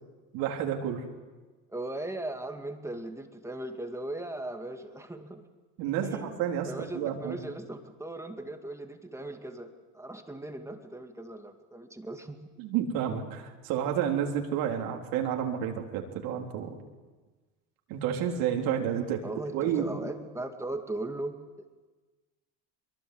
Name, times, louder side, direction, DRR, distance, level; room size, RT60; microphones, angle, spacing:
voice 1, 0.3-1.0 5.8-7.4 12.6-16.8 17.9-19.2 19.5-19.9, right 9 dB, 70° right, 2 dB, 3.7 m, -30 dB
voice 2, 1.7-5.5 6.0-6.3 6.7-12.4 19.2-21.4, right 2 dB, 10° right, 5 dB, 2.3 m, -38 dB
23.0 x 23.0 x 7.9 m, 1.3 s
supercardioid pair, 105°, 36 cm